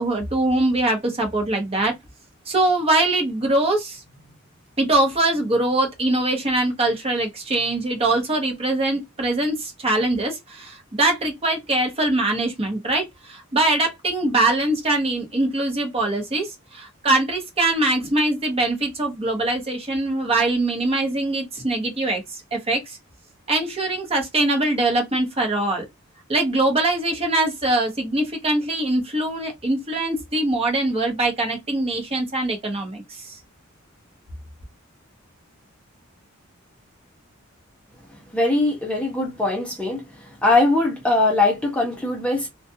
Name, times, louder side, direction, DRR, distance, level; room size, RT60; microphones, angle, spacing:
voice 1, 0.0-1.9 2.5-4.0 4.8-23.0 23.5-25.9 26.3-33.4, right 2 dB, 30° right, 0.8 m, -22 dB
voice 2, 38.3-40.0 40.4-42.5, left 2 dB, 5° left, 0.6 m, -21 dB
2.4 x 2.2 x 2.6 m
head